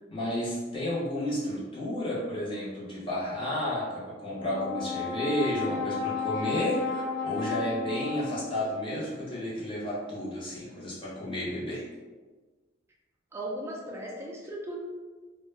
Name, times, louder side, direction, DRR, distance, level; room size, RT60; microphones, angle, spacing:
voice 1, 0.1-11.9, equal, 25° left, -8 dB, 0.7 m, -32 dB
Brass instrument, 4.3-8.7, left 5 dB, 85° left, 0.6 m, -33 dB
voice 2, 13.3-14.8, right 1 dB, 15° right, -2 dB, 0.4 m, -37 dB
2.1 x 2.1 x 3.2 m, 1.3 s
head